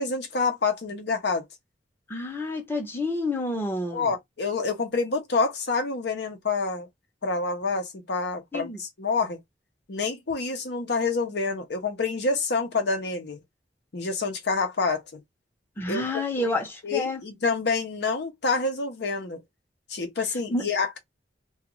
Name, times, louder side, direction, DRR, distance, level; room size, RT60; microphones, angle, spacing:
voice 1, 0.0-1.4 3.9-6.9 7.2-9.4 9.9-13.4 13.9-15.2 15.9-16.6 16.8-19.4 19.9-21.0, left 4 dB, 65° left, 0.7 m, -27 dB
voice 2, 2.1-4.1 8.5-8.8 15.8-17.2 20.5-20.6, left 2 dB, 15° left, 0.7 m, -29 dB
2.4 x 2.4 x 3.0 m
head